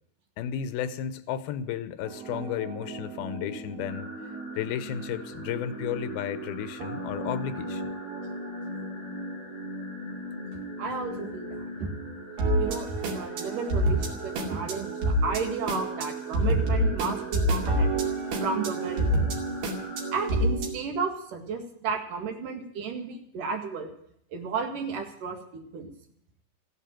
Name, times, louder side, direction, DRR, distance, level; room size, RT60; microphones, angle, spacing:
voice 1, 0.4-4.1 4.5-7.8, left 9 dB, 90° left, 13 dB, 2.9 m, -33 dB
sound 1, 2.1-20.7, right 1 dB, 85° right, 4.3 m, -30 dB
sound 2, 3.9-20.3, left 2 dB, 65° left, 4.8 m, -48 dB
voice 2, 10.5-11.9 12.6-17.9 18.4-19.3 20.1-23.9 24.3-25.9, right 5 dB, 65° right, 4 dB, 3.5 m, -33 dB
15.0 x 10.0 x 8.9 m, 0.69 s
omnidirectional pair, 4.2 m